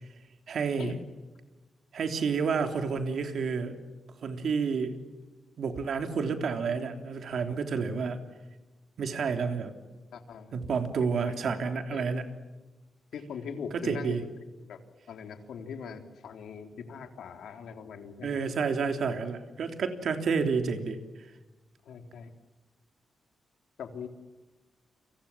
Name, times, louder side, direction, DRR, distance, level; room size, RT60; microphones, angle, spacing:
voice 1, 0.5-1.0 1.9-3.8 4.2-5.0 5.6-8.2 9.0-9.7 10.5-12.2 13.8-14.2 18.2-21.3, right 5 dB, 60° right, 6 dB, 3.5 m, -30 dB
voice 2, 10.1-10.5 11.0-11.4 11.9-12.2 13.1-14.3 14.6-14.8 15.1-18.4 21.9-22.3 23.8-24.1, left 6 dB, 85° left, 6 dB, 3.6 m, -41 dB
30.0 x 26.5 x 7.5 m, 1.2 s
wide cardioid pair, 145°, 0 cm